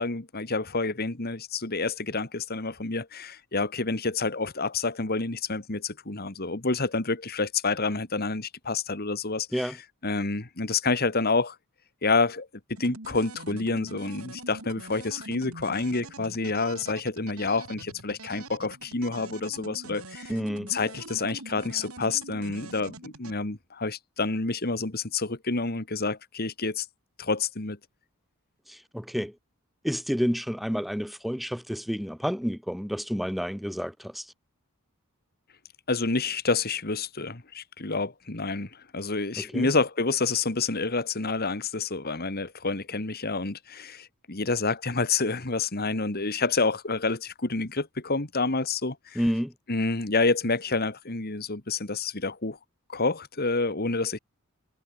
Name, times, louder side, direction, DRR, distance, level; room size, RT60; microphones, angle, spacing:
voice 1, 0.0-9.8 10.0-11.6 12.0-12.5 12.8-20.4 20.7-26.9 27.2-27.8 35.9-49.2 49.7-52.6 52.9-54.2, left 3 dB, 45° left, 1.9 m, -28 dB
sound 1, 12.8-23.3, right 2 dB, 75° right, 7.9 m, -44 dB
voice 2, 20.3-20.7 28.7-29.3 29.8-34.3 39.4-39.7 49.2-49.5, equal, ahead, 4.0 m, -30 dB
head